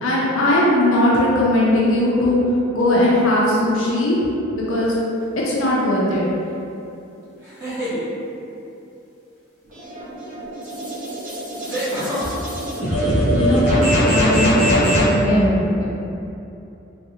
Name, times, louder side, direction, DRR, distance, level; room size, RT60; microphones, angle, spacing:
voice 1, 0.0-2.4 2.7-4.2 4.5-4.9 5.4-6.2, left 1 dB, 75° left, -5 dB, 0.6 m, -18 dB
sound 1, 4.8-5.2 7.4-8.0 10.3-10.4 11.7-12.2, equal, 15° right, 1.0 m, -27 dB
sound 2, 9.7-15.2, equal, 40° right, 1.0 m, -21 dB
voice 2, 13.1-13.7 14.0-15.8, equal, 15° left, -9 dB, 0.8 m, -21 dB
3.2 x 2.7 x 2.7 m, 2.8 s
head